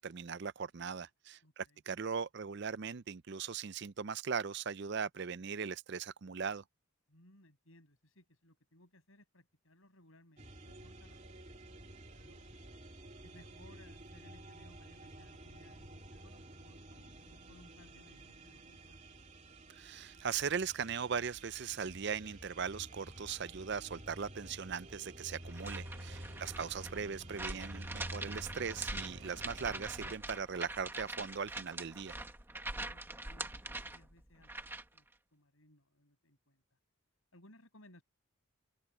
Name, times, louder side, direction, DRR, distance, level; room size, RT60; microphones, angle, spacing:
voice 1, 0.0-6.6 19.8-32.2, right 6 dB, 50° right, 0.5 m, -39 dB
voice 2, 1.4-1.8 7.1-11.4 12.0-12.6 13.2-19.2 32.7-35.1 35.3-36.8 37.3-38.0, left 1 dB, 70° left, 6.9 m, -63 dB
sound 1, 10.4-30.2, right 1 dB, 35° right, 2.9 m, -51 dB
sound 2, 25.5-35.0, right 2 dB, 10° right, 1.5 m, -44 dB
open air
head